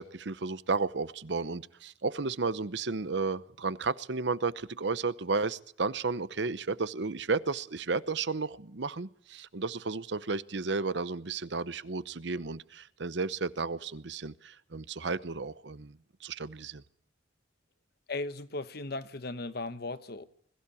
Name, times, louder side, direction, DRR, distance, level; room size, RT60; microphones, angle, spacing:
voice 1, 0.0-16.8, right 4 dB, 65° right, 0.8 m, -33 dB
voice 2, 18.1-20.2, left 2 dB, 55° left, 1.1 m, -37 dB
21.5 x 15.0 x 8.5 m
head